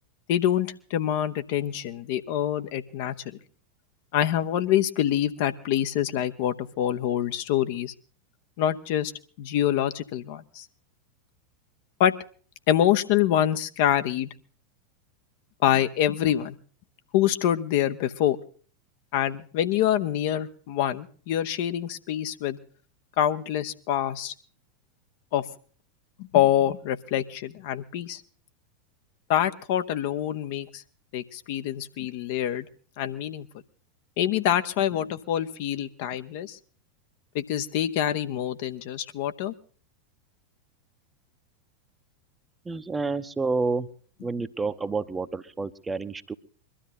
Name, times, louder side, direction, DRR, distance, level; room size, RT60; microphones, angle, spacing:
voice 1, 0.3-3.4 4.1-7.9 8.6-9.1 9.4-10.7 12.0-12.1 12.7-14.3 15.6-16.6 17.1-18.4 19.1-22.6 23.2-24.3 25.3-25.4 26.2-28.2 29.3-30.8 31.1-32.7 33.0-33.5 34.2-36.6 37.3-39.5, left 11 dB, 50° left, 10 dB, 0.9 m, -25 dB
voice 2, 42.6-43.9 44.2-46.3, right 4 dB, 10° right, 11 dB, 0.8 m, -29 dB
22.0 x 13.0 x 4.1 m, 0.41 s
figure-of-eight pair, 90°, 0 cm